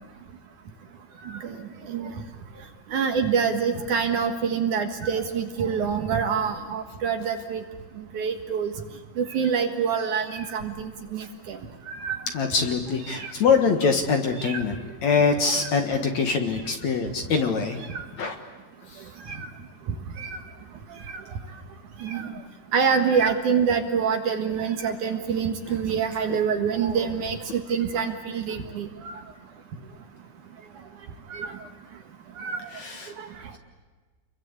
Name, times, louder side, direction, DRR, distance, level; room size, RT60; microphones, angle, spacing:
voice 1, 1.3-1.6 1.9-2.1 2.9-7.6 8.1-8.7 9.2-11.6 11.9-12.2 13.1-13.3 14.4-14.6 15.4-15.7 17.9-18.0 19.3-19.5 20.2-20.4 22.0-22.3 22.7-29.1 31.3-31.5 32.4-32.7 33.2-33.3, right 6 dB, 60° right, 6 dB, 2.7 m, -26 dB
voice 2, 12.3-17.8 18.1-18.4 18.9-19.0 25.7-25.8 26.3-26.4 32.7-33.1, left 5 dB, 55° left, 5 dB, 2.4 m, -24 dB
29.0 x 22.5 x 8.3 m, 1.4 s
omnidirectional pair, 4.6 m